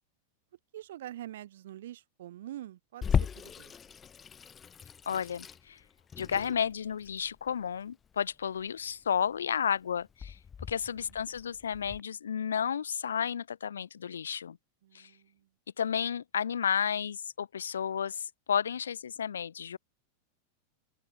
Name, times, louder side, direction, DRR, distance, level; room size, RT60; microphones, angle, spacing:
voice 1, 0.7-3.7 10.9-11.2 14.8-15.5, right 13 dB, 60° right, 4.8 m, -45 dB
Water tap faucet / Sink (filling or washing), 3.0-12.0, left 7 dB, 20° left, 1.2 m, -37 dB
voice 2, 5.1-5.8 6.2-10.4 10.7-14.6 14.9-15.1 15.8-19.8, left 8 dB, 70° left, 0.6 m, -32 dB
open air
figure-of-eight pair, 90°, 0 cm